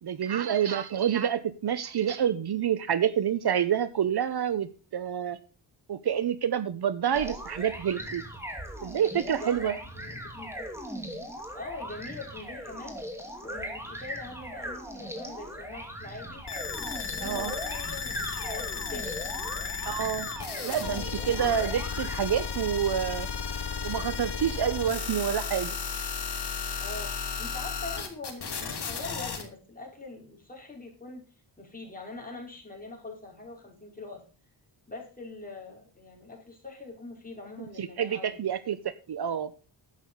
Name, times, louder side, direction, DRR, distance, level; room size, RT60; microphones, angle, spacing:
voice 1, 0.0-5.4 5.9-8.2 8.8-9.7 17.2-17.5 19.8-20.3 20.6-23.3 23.8-25.7 37.8-38.8 39.1-39.5, right 9 dB, 60° right, 14 dB, 0.9 m, -28 dB
sound 1, 7.1-22.2, equal, 5° right, 2.7 m, -39 dB
voice 2, 9.2-10.6 11.5-13.0 13.4-16.4 16.8-19.2 20.5-21.6 26.8-31.2 31.6-34.2 34.9-38.5, left 3 dB, 20° left, -1 dB, 4.9 m, -43 dB
sound 2, 16.5-29.4, left 6 dB, 60° left, 3.0 m, -34 dB
11.5 x 8.3 x 5.3 m, 0.35 s
wide cardioid pair, 125°, 44 cm